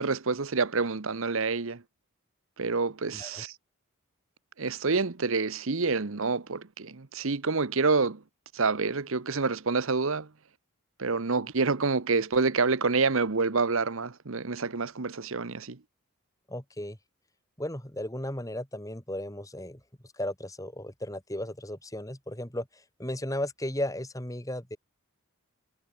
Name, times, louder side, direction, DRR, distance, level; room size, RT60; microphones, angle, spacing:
voice 1, 0.0-1.8 2.6-3.5 4.6-8.2 8.5-10.3 11.0-15.8, right 4 dB, 65° right, 1.0 m, -27 dB
voice 2, 3.1-3.4 16.5-17.0 17.6-19.8 20.2-24.8, left 1 dB, 15° left, 3.0 m, -35 dB
head